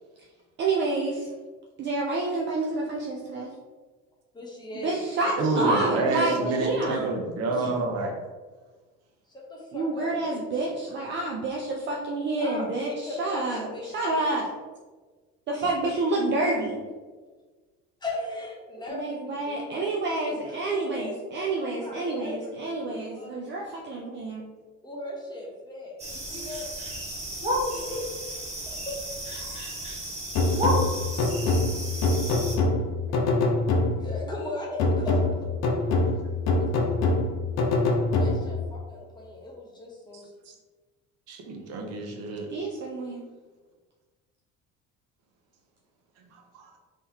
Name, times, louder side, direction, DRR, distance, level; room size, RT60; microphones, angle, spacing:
voice 1, 0.6-1.3 1.8-3.5 4.8-7.2 9.7-14.5 15.5-16.8 18.9-24.4 42.5-43.2, right 2 dB, 40° right, -2 dB, 0.5 m, -29 dB
voice 2, 4.3-6.1 6.4-6.6 7.5-7.8 9.3-10.6 12.4-14.3 15.5-15.7 18.0-23.7 24.8-26.7 27.3-29.0 30.1-30.2 33.1-33.2 34.0-35.5 36.6-37.0 37.4-37.7 38.1-40.3, left 1 dB, 15° left, -3 dB, 0.9 m, -38 dB
voice 3, 5.4-8.1 30.5-30.6 31.5-31.6 40.1-40.2 41.3-42.5 46.3-46.7, right 2 dB, 55° right, 2 dB, 0.8 m, -28 dB
sound 1, 26.0-32.6, equal, 20° right, 1.0 m, -32 dB
sound 2, 30.4-34.2 34.8-38.7, left 2 dB, 60° left, 0.6 m, -24 dB
3.7 x 3.1 x 2.8 m, 1.3 s
cardioid pair, 125°, 30 cm